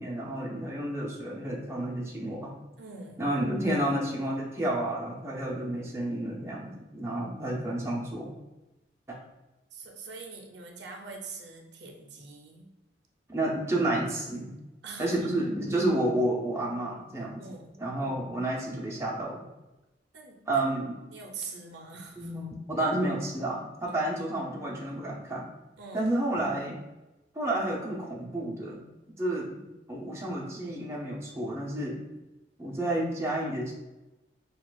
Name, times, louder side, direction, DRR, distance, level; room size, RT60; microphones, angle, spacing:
voice 1, 0.0-2.5 3.2-8.3 9.1-9.2 13.3-14.5 15.0-17.3 17.8-19.5 20.5-21.0 22.2-25.5 25.9-26.8 27.3-28.8 29.2-29.5 29.9-32.0 32.6-33.7, right 1 dB, 15° right, -3 dB, 0.5 m, -30 dB
voice 2, 2.8-3.3 9.7-12.7 14.8-15.4 17.4-17.8 20.1-20.4 21.1-22.3 23.9-24.1 25.8-26.1 29.5-29.7, right 4 dB, 65° right, 1 dB, 0.6 m, -43 dB
6.1 x 2.3 x 2.3 m, 1.0 s
head